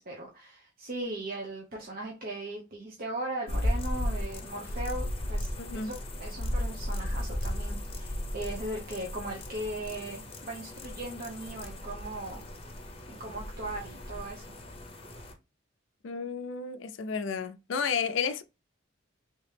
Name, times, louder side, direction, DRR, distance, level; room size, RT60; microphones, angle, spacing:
voice 1, 0.0-5.5 5.8-5.9 6.2-12.4 13.1-14.4, right 2 dB, 50° right, 0.8 m, -38 dB
sound 1, 3.5-15.3, left 1 dB, 30° left, 0.7 m, -35 dB
voice 2, 5.6-5.9 16.0-18.4, left 6 dB, 70° left, 0.4 m, -32 dB
3.4 x 2.9 x 3.3 m
head